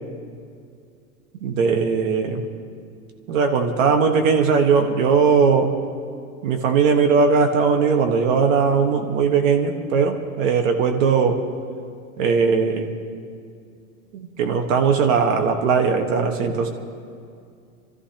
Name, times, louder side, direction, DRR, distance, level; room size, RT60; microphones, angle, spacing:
voice 1, 1.4-2.4 3.3-5.7 6.4-11.4 12.2-12.9 14.1-16.7, right 5 dB, 60° right, 5 dB, 1.5 m, -19 dB
28.0 x 14.0 x 2.9 m, 2.4 s
supercardioid pair, 145°, 43 cm